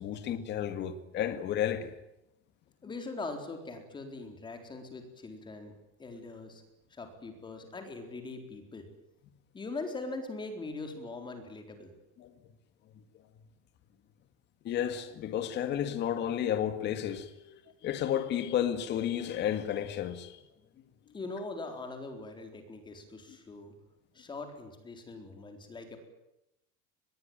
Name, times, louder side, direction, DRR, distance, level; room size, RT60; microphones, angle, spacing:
voice 1, 0.0-1.9 12.2-12.3 14.6-20.4, left 10 dB, 35° left, 2.0 m, -32 dB
voice 2, 2.8-5.7 6.0-6.6 6.9-8.9 9.5-11.9 21.1-23.7 24.1-26.0, left 3 dB, 15° left, 4.1 m, -41 dB
25.5 x 21.5 x 9.0 m
cardioid pair, 180°, 32 cm